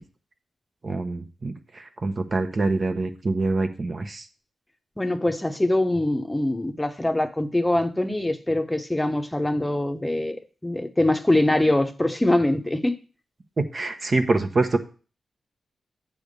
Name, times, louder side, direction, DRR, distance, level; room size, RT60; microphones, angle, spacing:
voice 1, 0.8-4.2 13.6-14.8, right 3 dB, 40° right, 0.9 m, -25 dB
voice 2, 5.0-12.9, left 1 dB, 15° left, 0.8 m, -23 dB
8.5 x 3.5 x 6.6 m
cardioid pair, 85°, 0 cm